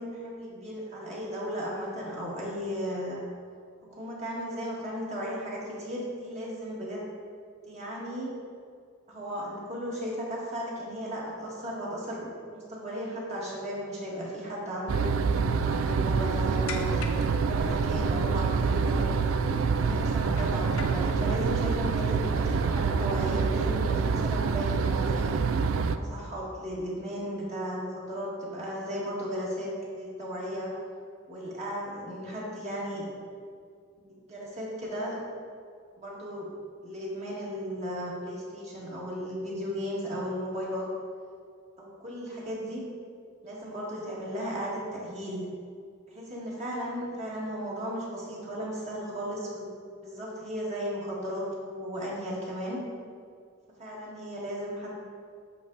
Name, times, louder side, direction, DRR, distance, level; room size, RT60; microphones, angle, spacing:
voice 1, 0.0-3.2 3.9-7.1 7.7-8.3 9.1-15.1 15.6-19.0 19.7-25.4 25.9-30.7 31.3-33.1 34.0-35.2 36.0-36.5 36.8-40.9 41.8-42.8 43.4-45.4 46.1-49.7 50.0-52.8 53.8-55.0, equal, 35° right, -5 dB, 1.8 m, -35 dB
sound 1, 14.9-26.0, right 5 dB, 80° right, 0.4 m, -26 dB
sound 2, 15.2-24.9, left 3 dB, 90° left, 0.6 m, -44 dB
8.6 x 5.9 x 4.0 m, 2.2 s
head